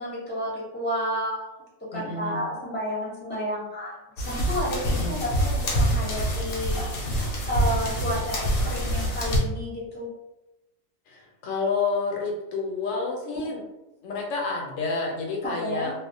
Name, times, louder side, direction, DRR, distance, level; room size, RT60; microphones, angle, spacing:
voice 1, 0.0-1.6 1.9-7.0 7.5-10.1 15.4-15.9, equal, 10° left, -6 dB, 0.6 m, -31 dB
voice 2, 1.9-2.4 4.8-5.2 11.1-13.6 14.0-15.9, left 4 dB, 80° left, 0 dB, 1.0 m, -29 dB
sound 1, 4.2-9.4, equal, 55° left, 0.8 m, -26 dB
2.3 x 2.0 x 2.6 m, 0.98 s
omnidirectional pair, 1.3 m